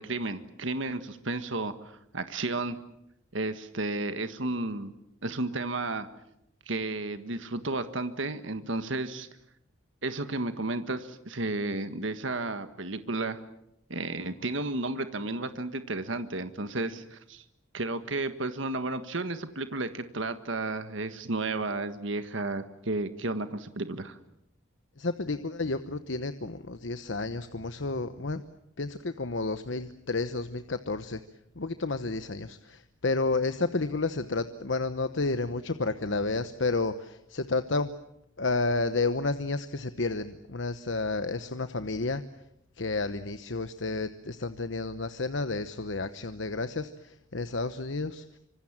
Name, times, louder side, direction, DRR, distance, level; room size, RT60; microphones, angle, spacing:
voice 1, 0.0-1.7 2.1-2.8 3.3-4.9 5.2-6.1 6.7-9.3 10.0-13.4 13.9-17.4 17.7-24.2, right 2 dB, 70° right, 10 dB, 1.6 m, -32 dB
voice 2, 25.0-28.4 28.8-31.2 31.5-37.9 38.4-42.2 42.8-48.4, left 3 dB, 65° left, 10 dB, 1.0 m, -31 dB
26.0 x 25.5 x 7.5 m, 0.81 s
head